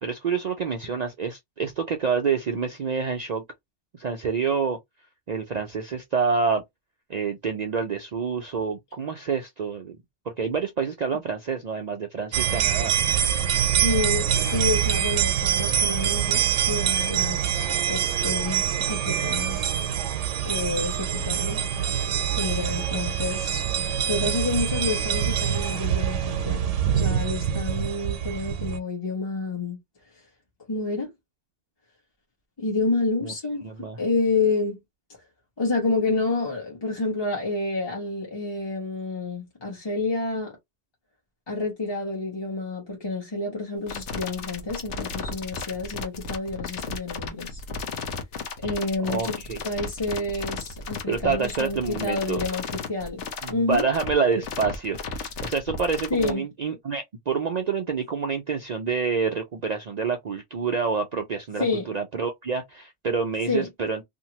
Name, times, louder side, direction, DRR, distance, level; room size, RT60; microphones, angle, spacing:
voice 1, 0.0-3.4 3.9-4.8 5.3-6.6 7.1-10.0 10.3-13.0 33.2-33.3 33.6-34.0 49.0-49.6 51.1-52.4 53.4-64.0, right 5 dB, 55° right, 0.4 m, -27 dB
sound 1, 12.3-28.8, right 9 dB, 90° right, 1.0 m, -25 dB
voice 2, 13.8-19.7 20.4-21.6 22.3-23.6 24.1-26.6 26.9-29.8 30.7-31.1 32.6-34.8 35.6-40.5 41.5-47.6 48.6-53.2 53.5-53.9 56.1-56.4 61.6-61.9 63.5-63.7, left 3 dB, 25° left, 1.1 m, -29 dB
sound 2, 43.9-56.3, left 4 dB, 75° left, 1.1 m, -34 dB
2.8 x 2.5 x 2.9 m
omnidirectional pair, 1.2 m